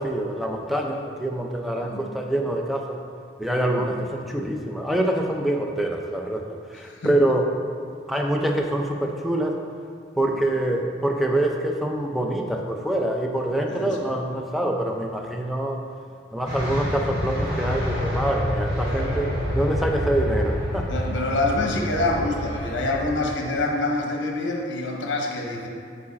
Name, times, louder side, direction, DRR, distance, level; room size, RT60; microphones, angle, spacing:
voice 1, 0.0-3.0 3.4-6.4 6.7-7.5 8.1-9.6 10.2-15.8 16.3-20.9, right 1 dB, ahead, 1 dB, 0.4 m, -25 dB
voice 2, 6.8-7.1 10.3-10.4 13.7-14.0 18.8-19.0 20.9-25.7, left 2 dB, 70° left, 1 dB, 0.8 m, -26 dB
sound 1, 16.5-23.1, left 1 dB, 50° right, 1.5 m, -27 dB
4.9 x 4.7 x 4.1 m, 2.2 s
head